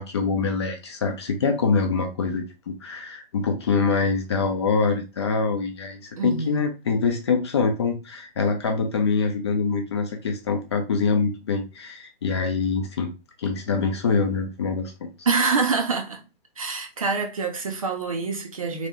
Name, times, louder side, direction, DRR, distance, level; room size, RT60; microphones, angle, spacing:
voice 1, 0.0-13.1 13.4-14.9, left 4 dB, 25° left, 0.7 m, -24 dB
voice 2, 6.2-6.7 15.3-16.2 16.6-18.9, right 4 dB, 35° right, 0.7 m, -26 dB
3.9 x 3.2 x 3.7 m
figure-of-eight pair, 135°, 31 cm